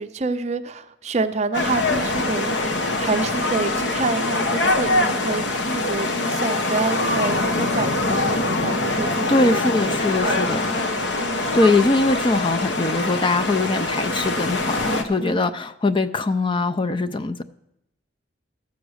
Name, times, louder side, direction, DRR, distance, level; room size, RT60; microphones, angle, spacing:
voice 1, 0.0-2.5 3.0-9.6 9.9-10.6 11.2-11.5 15.2-15.5, right 3 dB, 35° right, 10 dB, 0.6 m, -28 dB
sound 1, 1.5-15.0, left 2 dB, 70° left, 1.0 m, -23 dB
voice 2, 9.3-10.7 11.5-17.4, left 2 dB, 25° left, 9 dB, 0.4 m, -22 dB
13.5 x 7.0 x 6.4 m, 0.82 s
head